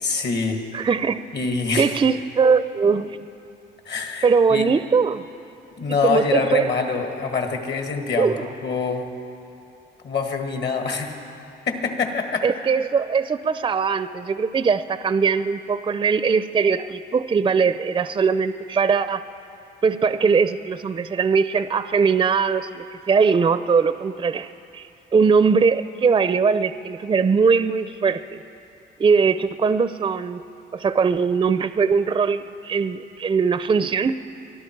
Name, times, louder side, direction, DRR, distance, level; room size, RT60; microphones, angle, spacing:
voice 1, 0.0-0.6 1.3-2.0 3.9-4.7 5.8-9.1 10.0-11.2 11.7-12.4, left 4 dB, 60° left, 4 dB, 1.9 m, -25 dB
voice 2, 0.7-1.2 1.8-3.2 4.2-5.2 6.0-6.7 8.0-8.4 12.4-19.2 19.8-28.2 29.0-30.4 30.7-34.1, right 5 dB, 25° right, 13 dB, 0.4 m, -20 dB
23.0 x 13.0 x 4.6 m, 2.7 s
cardioid pair, 90°, 20 cm